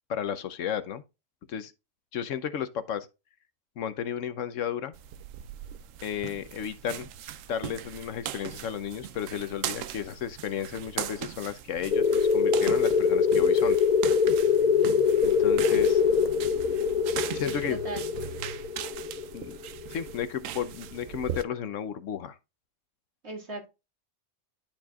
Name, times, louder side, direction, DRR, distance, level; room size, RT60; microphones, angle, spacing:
voice 1, 0.1-1.0 1.5-1.7 2.1-3.1 3.8-4.9 6.0-7.1 7.5-13.8 15.2-16.0 17.3-17.8 19.3-19.6 19.9-22.4, left 8 dB, 75° left, 1.1 m, -33 dB
sound 1, 4.9-21.4, right 10 dB, 85° right, 1.0 m, -39 dB
sound 2, 11.9-20.2, left 6 dB, 60° left, 0.5 m, -24 dB
voice 2, 17.3-18.0 23.2-23.7, right 2 dB, 55° right, 2.5 m, -38 dB
12.0 x 4.4 x 2.4 m
omnidirectional pair, 1.3 m